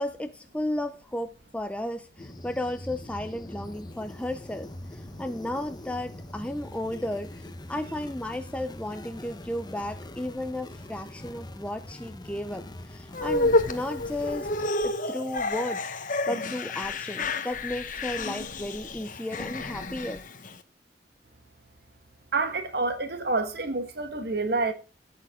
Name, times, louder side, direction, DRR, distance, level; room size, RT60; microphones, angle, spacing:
voice 1, 0.0-14.5 14.8-15.9 16.3-20.2, left 1 dB, 5° left, 0.6 m, -34 dB
sound 1, 2.2-14.7, left 1 dB, 25° left, 0.9 m, -43 dB
sound 2, 13.1-20.5, left 2 dB, 50° left, 1.1 m, -30 dB
voice 2, 22.3-24.7, right 3 dB, 60° right, 1.4 m, -28 dB
12.0 x 8.6 x 3.6 m
head